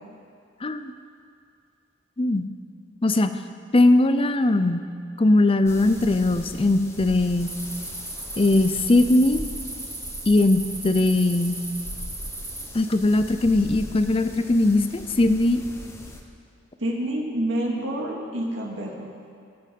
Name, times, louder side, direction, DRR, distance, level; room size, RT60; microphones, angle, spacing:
voice 1, 0.6-0.9 2.2-2.5 3.0-3.3 3.7-4.8 5.2-7.5 8.4-9.4 10.3-11.6 12.7-15.6, left 2 dB, 30° left, 10 dB, 0.6 m, -20 dB
sound 1, 5.7-16.2, left 1 dB, 15° left, 1.1 m, -40 dB
sound 2, 7.4-12.7, right 2 dB, 10° right, 2.4 m, -37 dB
voice 2, 16.8-19.1, right 1 dB, 80° right, -1 dB, 2.2 m, -28 dB
20.0 x 8.1 x 5.3 m, 2.4 s
head